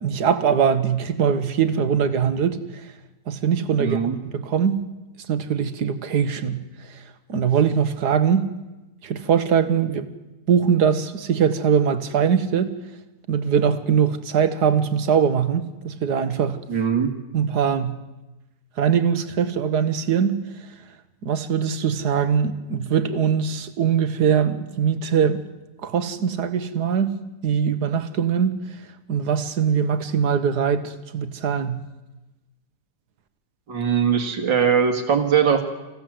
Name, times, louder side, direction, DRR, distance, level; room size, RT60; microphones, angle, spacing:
voice 1, 0.0-2.9 3.3-4.0 4.3-4.8 5.3-7.0 7.3-8.5 9.0-10.1 10.5-12.7 13.3-16.6 17.3-18.0 18.8-20.3 21.2-25.4 25.8-27.2 27.4-28.6 29.1-31.8, right 7 dB, 60° right, 1.7 m, -22 dB
voice 2, 3.8-4.2 16.7-17.2 33.7-35.6, right 7 dB, 80° right, 2.8 m, -20 dB
25.5 x 15.5 x 7.7 m
omnidirectional pair, 2.0 m